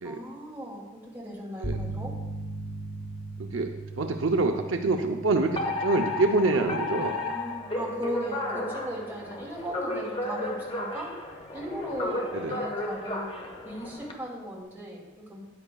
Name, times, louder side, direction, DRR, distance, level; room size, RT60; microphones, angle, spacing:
voice 1, 0.0-2.1 7.0-11.1 11.5-15.4, equal, 10° right, -5 dB, 2.4 m, -38 dB
sound 1, 1.6-9.4, right 2 dB, 80° left, 1.6 m, -40 dB
voice 2, 3.4-7.1 12.4-12.7, right 3 dB, 70° right, 4 dB, 0.6 m, -26 dB
Alarm, 5.6-14.1, left 2 dB, 25° left, 1.1 m, -33 dB
13.0 x 9.7 x 2.3 m, 1.1 s
head